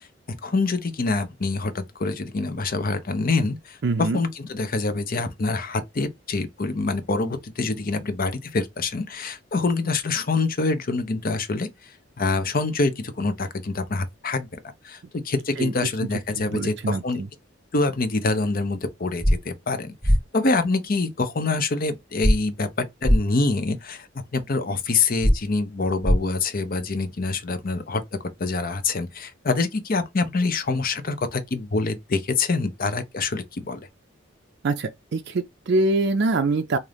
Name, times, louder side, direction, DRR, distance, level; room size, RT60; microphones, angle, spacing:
voice 1, 0.4-11.7 12.2-14.6 14.8-17.2 17.7-24.1 24.3-28.0 28.4-33.9, left 3 dB, 45° left, 0.6 m, -25 dB
voice 2, 3.8-4.2 15.6-15.7 16.3-17.3 34.6-36.8, right 3 dB, 60° right, 0.4 m, -24 dB
sound 1, 19.2-19.3 20.0-20.2 22.2-22.3 23.0-23.2 25.2-25.3 26.0-26.2, equal, 5° left, 1.4 m, -17 dB
3.7 x 2.6 x 3.4 m
head